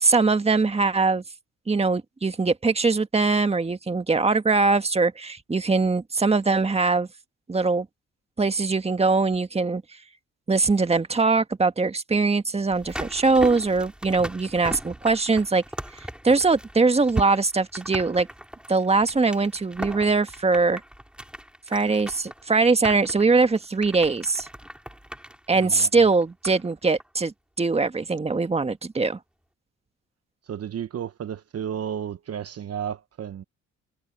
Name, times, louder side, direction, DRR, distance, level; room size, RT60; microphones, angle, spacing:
voice 1, 0.0-1.2 1.7-7.1 7.5-7.9 8.4-9.8 10.5-15.6 16.0-18.3 18.7-20.8 21.7-24.5 25.5-29.2, right 3 dB, 20° right, 1.6 m, -22 dB
sound 1, 12.7-26.7 27.0-27.1, equal, 5° right, 6.2 m, -39 dB
voice 2, 25.6-26.1 30.5-33.4, right 8 dB, 55° right, 1.1 m, -33 dB
cardioid pair, 90°, 30 cm